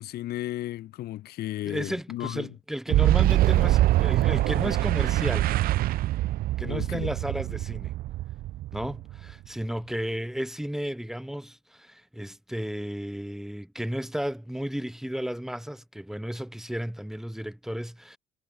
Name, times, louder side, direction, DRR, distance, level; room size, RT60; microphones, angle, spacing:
voice 1, 0.0-2.5 6.6-7.1, left 15 dB, 70° left, 1.3 m, -34 dB
voice 2, 1.6-5.5 6.6-7.9 8.7-18.2, equal, ahead, 4.9 m, -33 dB
Boom, 2.9-9.5, right 15 dB, 60° right, 0.4 m, -24 dB
cardioid pair, 110°, 17 cm